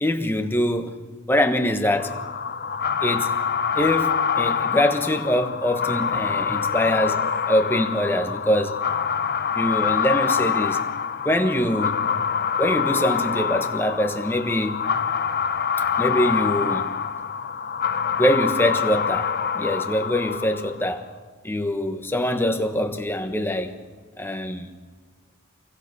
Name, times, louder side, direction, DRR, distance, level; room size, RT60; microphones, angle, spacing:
voice 1, 0.0-0.9 1.3-2.2 3.0-3.3 3.7-8.8 9.5-10.8 11.2-12.0 12.6-14.8 16.0-16.9 18.2-21.1 21.4-23.8 24.2-24.7, left 1 dB, 10° left, 5 dB, 1.2 m, -23 dB
sound 1, 1.9-20.8, left 7 dB, 45° left, 0.7 m, -25 dB
26.0 x 23.0 x 6.6 m, 1.4 s
head